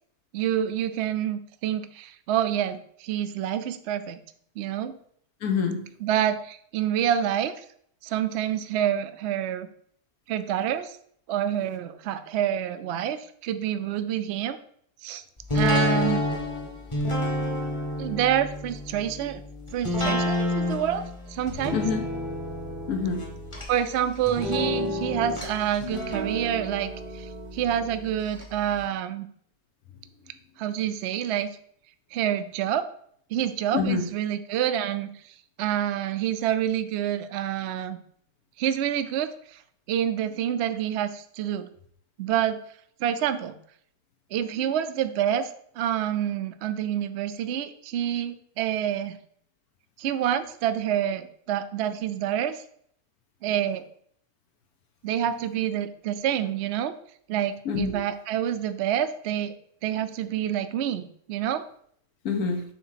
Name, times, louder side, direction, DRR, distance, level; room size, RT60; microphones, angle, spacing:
voice 1, 0.3-4.2 4.6-5.0 6.0-7.6 8.0-9.7 10.3-11.0 11.3-14.6 15.0-15.2 15.5-16.3 18.0-19.4 19.7-21.0 21.3-21.8 23.7-29.3 30.6-31.5 32.1-32.9 33.3-38.0 38.6-39.6 39.9-41.7 42.2-42.6 43.0-43.6 44.3-45.5 45.8-49.2 50.0-52.6 53.4-53.9 55.0-56.9 57.3-59.5 59.8-61.6, right 10 dB, 65° right, 10 dB, 0.7 m, -27 dB
voice 2, 5.4-5.9 21.7-22.0 22.9-23.2 33.7-34.0 57.7-58.0 62.2-62.6, left 5 dB, 75° left, 3 dB, 1.4 m, -26 dB
sound 1, 15.5-28.4 28.8-28.9, left 1 dB, 20° left, 1.1 m, -29 dB
7.4 x 3.0 x 5.7 m, 0.63 s
omnidirectional pair, 1.6 m